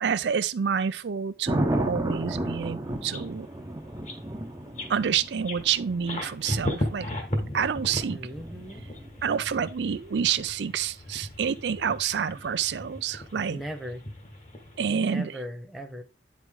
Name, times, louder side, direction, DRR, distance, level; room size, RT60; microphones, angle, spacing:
voice 1, 0.0-3.5 4.9-7.1 7.5-8.3 9.2-13.6 14.8-15.4, right 7 dB, 75° right, 0.4 m, -28 dB
Thunder, 1.5-9.5 12.2-12.6, right 1 dB, 20° right, 0.7 m, -33 dB
sound 1, 3.0-3.6 3.9-4.2 4.7-5.0 5.5-14.8, left 1 dB, 40° left, 1.6 m, -36 dB
voice 2, 8.1-8.9 13.5-14.0 14.9-16.0, equal, ahead, 1.0 m, -38 dB
9.2 x 4.7 x 3.6 m
head